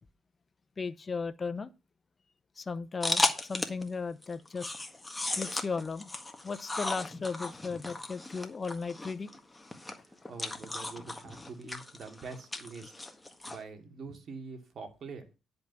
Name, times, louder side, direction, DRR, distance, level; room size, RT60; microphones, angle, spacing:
voice 1, 0.8-1.7 2.6-4.7 5.4-6.1 6.4-9.3, left 4 dB, 35° left, 0.7 m, -36 dB
sound 1, 3.0-3.9 4.2-13.6, left 2 dB, 15° left, 1.6 m, -35 dB
voice 2, 10.0-12.9 13.5-15.3, right 4 dB, 55° right, 2.6 m, -45 dB
10.5 x 5.3 x 6.8 m
cardioid pair, 90°, 0 cm